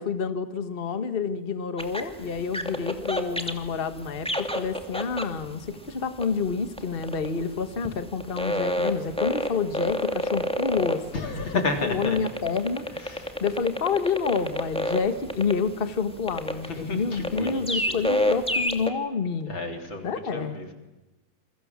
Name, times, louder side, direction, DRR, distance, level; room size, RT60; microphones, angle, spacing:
voice 1, 0.0-12.9 13.4-19.5 20.0-20.6, left 5 dB, 55° left, 10 dB, 0.6 m, -28 dB
sound 1, 1.8-18.9, left 1 dB, ahead, 1.8 m, -29 dB
voice 2, 11.1-12.2 12.9-13.4 16.6-18.0 19.5-20.7, left 3 dB, 40° left, 4 dB, 4.3 m, -32 dB
28.5 x 23.0 x 7.4 m, 1.1 s
omnidirectional pair, 3.4 m